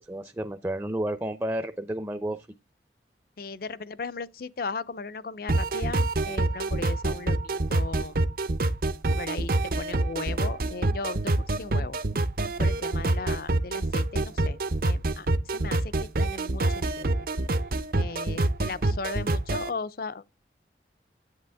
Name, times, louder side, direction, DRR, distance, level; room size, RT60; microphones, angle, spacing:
voice 1, 0.0-2.5, right 1 dB, 15° right, 0.6 m, -31 dB
voice 2, 3.4-8.2 9.1-12.0 12.6-17.3 17.9-20.3, left 4 dB, 55° left, 0.6 m, -37 dB
sound 1, 5.5-19.7, right 2 dB, 50° right, 0.8 m, -26 dB
10.5 x 8.4 x 3.5 m
head